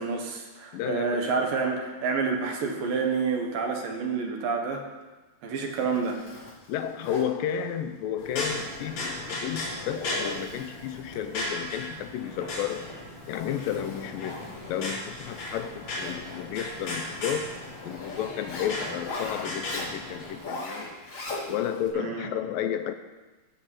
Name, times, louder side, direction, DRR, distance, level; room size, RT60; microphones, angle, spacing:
voice 1, 0.0-4.8 5.4-6.2 21.9-22.3, right 4 dB, 70° right, 2 dB, 3.1 m, -28 dB
voice 2, 0.7-1.2 6.7-12.9 13.3-17.5 17.8-20.9 21.5-22.9, left 9 dB, 80° left, 8 dB, 2.3 m, -32 dB
Zipper (clothing), 5.7-21.9, left 2 dB, 25° left, 2.4 m, -42 dB
sound 1, 8.2-20.4, left 2 dB, 55° left, 5.0 m, -36 dB
15.0 x 6.8 x 7.7 m, 1.2 s
omnidirectional pair, 4.2 m